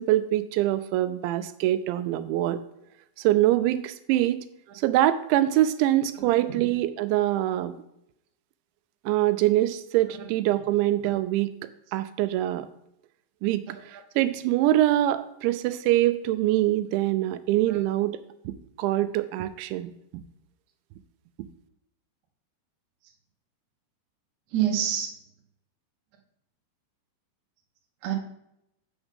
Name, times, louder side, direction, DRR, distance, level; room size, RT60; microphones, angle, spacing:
voice 1, 0.0-2.6 3.2-4.5 4.8-7.8 9.1-11.5 11.9-12.7 13.4-18.2 18.5-20.2, right 14 dB, 85° right, 12 dB, 2.9 m, -24 dB
voice 2, 6.2-6.7 11.0-11.1 13.9-14.0 17.7-17.8 24.5-25.1 28.0-28.1, right 10 dB, 65° right, 1 dB, 1.9 m, -28 dB
7.1 x 6.5 x 5.1 m, 0.80 s
omnidirectional pair, 5.2 m